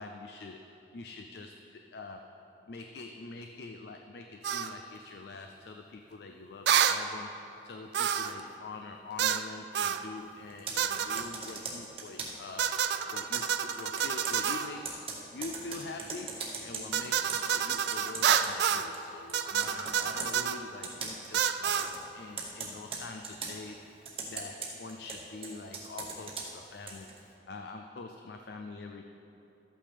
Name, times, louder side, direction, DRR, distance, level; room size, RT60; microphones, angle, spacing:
voice 1, 0.0-2.3 2.7-12.8 13.1-21.9 22.1-23.8 24.3-29.0, left 3 dB, 60° left, 4 dB, 0.4 m, -45 dB
sound 1, 4.4-4.7 6.7-7.0 7.9-8.4 9.2-9.5 9.7-10.0 10.8-11.3 12.6-14.7 16.9-18.9 19.3-20.6 21.3-21.9, right 8 dB, 65° right, 0.4 m, -28 dB
Computer keyboard, 10.5-12.5 13.3-19.0 19.3-20.3 20.8-21.3 21.6-22.0 22.4-23.6 24.0-27.2, right 4 dB, 30° right, 1.1 m, -40 dB
13.0 x 8.4 x 3.4 m, 2.9 s
head